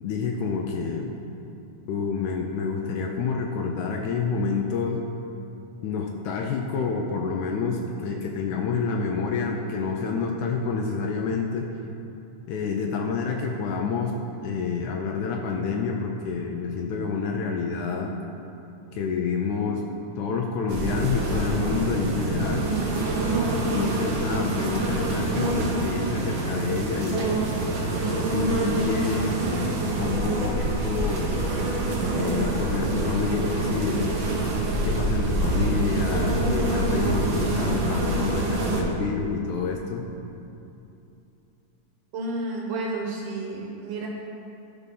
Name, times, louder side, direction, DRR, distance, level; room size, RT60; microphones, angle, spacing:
voice 1, 0.0-1.1 1.9-5.0 5.8-11.7 12.5-14.2 14.4-18.1 18.9-19.8 20.2-22.7 23.5-27.4 28.1-31.5 32.2-34.2 34.8-40.0, left 5 dB, 75° left, 2 dB, 2.0 m, -28 dB
sound 1, 20.7-38.8, right 2 dB, 55° right, 1.5 m, -26 dB
voice 2, 42.1-44.1, right 2 dB, 85° right, -2 dB, 2.6 m, -31 dB
13.0 x 5.5 x 5.4 m, 2.8 s
omnidirectional pair, 3.6 m